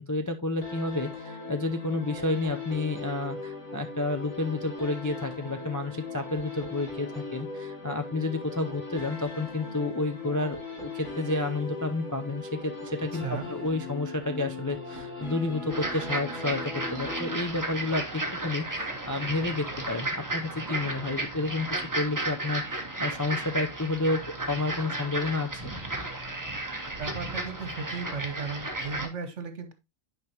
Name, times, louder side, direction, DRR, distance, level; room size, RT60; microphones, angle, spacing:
voice 1, 0.0-24.2 24.5-25.6, left 2 dB, 25° left, 5 dB, 0.4 m, -30 dB
sound 1, 0.6-17.8, left 3 dB, 65° left, 2.7 m, -39 dB
voice 2, 13.1-13.5 26.9-29.7, right 5 dB, 65° right, 8 dB, 1.5 m, -36 dB
sound 2, 15.7-29.1, right 2 dB, 15° right, 1.2 m, -34 dB
9.6 x 5.2 x 2.9 m, 0.24 s
omnidirectional pair, 1.3 m